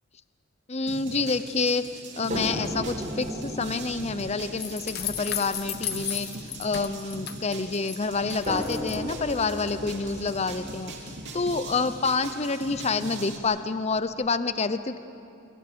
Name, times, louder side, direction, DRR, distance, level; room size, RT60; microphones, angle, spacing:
voice 1, 0.7-1.8 2.2-15.0, left 4 dB, 30° left, 12 dB, 0.7 m, -28 dB
sound 1, 0.9-13.4, right 2 dB, 55° right, 2.9 m, -41 dB
sound 2, 2.3-7.5 8.5-12.4 13.4-13.5 13.9-14.0, equal, 35° right, 4.3 m, -37 dB
sound 3, 4.6-8.0 8.3-9.0, left 11 dB, 50° left, 1.2 m, -34 dB
28.0 x 23.5 x 7.0 m, 2.6 s
head